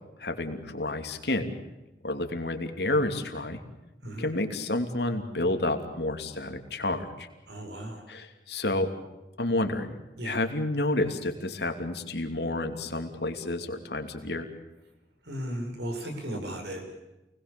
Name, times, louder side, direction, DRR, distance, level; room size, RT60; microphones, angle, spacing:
voice 1, 0.2-1.6 2.0-3.6 4.2-7.3 8.1-8.9 9.4-9.9 10.2-14.5, left 2 dB, 75° left, 5 dB, 2.9 m, -30 dB
voice 2, 7.5-8.1 10.2-10.4 15.2-16.9, right 1 dB, 80° right, 4 dB, 6.7 m, -36 dB
29.0 x 20.0 x 7.0 m, 1.0 s
head